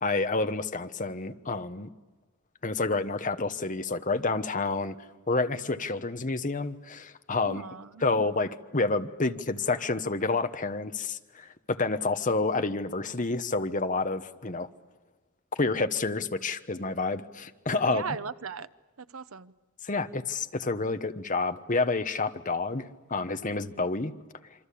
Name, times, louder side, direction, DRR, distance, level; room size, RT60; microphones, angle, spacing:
voice 1, 0.0-1.9 2.6-5.0 5.3-7.7 8.0-14.7 15.6-18.0 19.8-24.1, left 3 dB, 35° left, 9 dB, 1.2 m, -29 dB
voice 2, 7.4-8.1 17.8-18.7 19.0-19.5, right 5 dB, 65° right, 13 dB, 0.9 m, -38 dB
27.5 x 25.0 x 8.6 m, 1.2 s
head